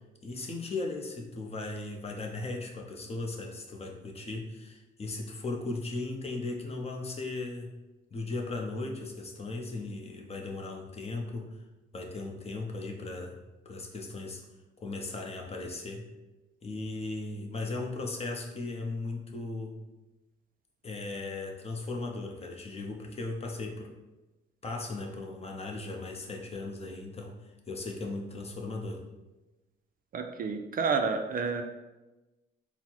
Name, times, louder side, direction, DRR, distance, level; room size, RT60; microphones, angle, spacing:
voice 1, 0.2-7.7 8.1-11.6 11.9-13.4 13.6-14.4 14.8-16.0 16.6-19.7 20.8-23.9 24.6-29.0, left 3 dB, 30° left, 1 dB, 0.7 m, -37 dB
voice 2, 30.1-31.6, right 5 dB, 45° right, 5 dB, 0.4 m, -29 dB
4.1 x 2.1 x 4.4 m, 1.1 s
cardioid pair, 90°, 20 cm